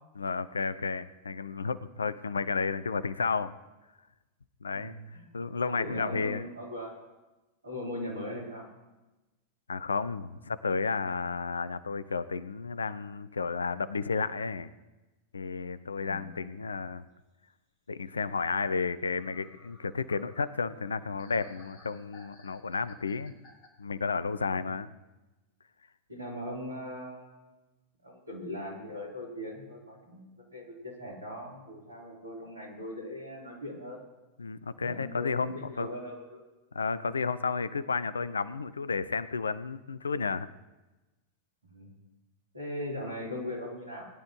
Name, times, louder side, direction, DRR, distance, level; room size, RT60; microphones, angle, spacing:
voice 1, 0.2-3.5 4.6-4.9 5.3-6.5 9.7-14.7 15.3-17.1 17.9-23.3 23.8-24.9 34.4-35.9 36.7-40.5, left 5 dB, 75° left, 16 dB, 0.5 m, -32 dB
voice 2, 4.7-5.2 5.6-7.0 7.6-8.6 15.9-16.6 26.1-27.4 28.0-34.0 34.7-36.4 41.6-41.9 42.5-44.1, left 1 dB, 80° right, -3 dB, 3.9 m, -40 dB
sound 1, 19.1-23.7, left 2 dB, 40° left, 3.8 m, -57 dB
20.5 x 10.5 x 3.1 m, 1.1 s
figure-of-eight pair, 90°, 0 cm